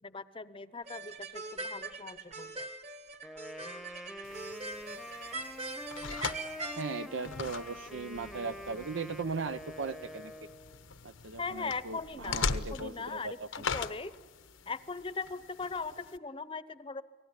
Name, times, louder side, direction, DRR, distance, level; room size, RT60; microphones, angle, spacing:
voice 1, 0.0-2.7 11.4-14.1 14.7-17.0, left 4 dB, 25° left, 15 dB, 0.8 m, -40 dB
sound 1, 0.9-6.8, right 2 dB, 35° right, 1.6 m, -42 dB
Wind instrument woodwind instrument, 3.2-10.8, equal, ahead, 1.0 m, -46 dB
sound 2, 4.2-16.2, left 5 dB, 85° left, 1.1 m, -41 dB
voice 2, 6.8-10.3 11.0-13.6, right 4 dB, 75° right, 12 dB, 0.7 m, -38 dB
29.5 x 19.5 x 9.8 m, 1.3 s
head